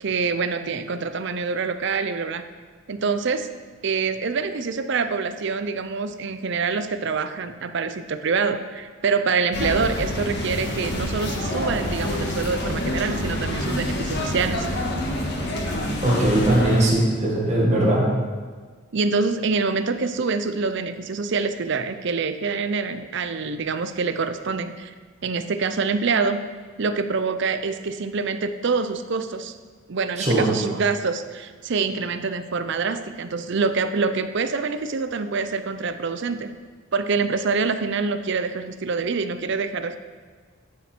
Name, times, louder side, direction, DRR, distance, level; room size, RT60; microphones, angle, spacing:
voice 1, 0.0-2.4 2.9-3.5 3.8-14.7 18.9-24.9 25.2-26.4 26.8-29.5 29.9-36.5 36.9-40.0, right 4 dB, 60° right, 10 dB, 0.5 m, -25 dB
sound 1, 9.5-16.8, left 1 dB, 55° left, 1.5 m, -27 dB
voice 2, 16.0-18.0 30.2-30.5, right 1 dB, 35° right, -4 dB, 1.7 m, -20 dB
9.8 x 7.4 x 4.5 m, 1.5 s
head